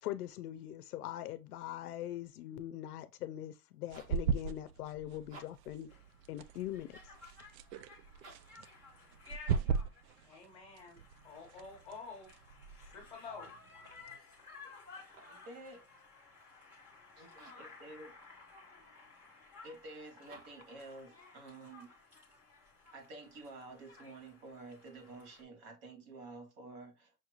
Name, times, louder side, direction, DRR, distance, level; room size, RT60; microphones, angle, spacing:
voice 1, 0.0-5.9 6.3-6.9, left 13 dB, 70° left, 0.6 m, -42 dB
sound 1, 3.6-4.3 5.2-5.8 8.1-8.6 9.4-9.9 14.9-15.5 17.3-17.7 20.2-20.8, right 3 dB, 55° right, 1.5 m, -56 dB
sound 2, 3.9-14.2, right 6 dB, 90° right, 0.6 m, -40 dB
Conversation, 5.9-25.4, left 4 dB, 5° right, 0.5 m, -56 dB
voice 2, 10.2-12.3 12.8-13.5, left 4 dB, 10° left, 1.1 m, -50 dB
voice 3, 15.3-15.8 17.2-18.1 19.6-22.0 22.9-27.1, right 2 dB, 25° right, 0.8 m, -50 dB
5.9 x 2.4 x 3.0 m
supercardioid pair, 175°, 48 cm